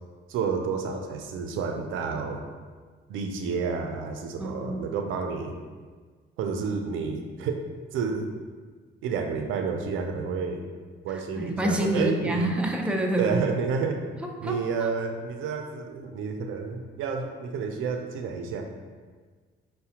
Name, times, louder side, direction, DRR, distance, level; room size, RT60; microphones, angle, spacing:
voice 1, 0.3-2.4 3.1-5.5 6.4-7.6 7.9-8.3 9.0-10.6 11.0-12.5 13.2-14.0 14.4-18.6, right 5 dB, 90° right, 4 dB, 0.4 m, -30 dB
voice 2, 4.4-4.9 11.1-13.4 14.2-14.9, right 1 dB, 5° right, 1 dB, 0.4 m, -28 dB
5.6 x 2.1 x 2.8 m, 1.5 s
cardioid pair, 90°, 20 cm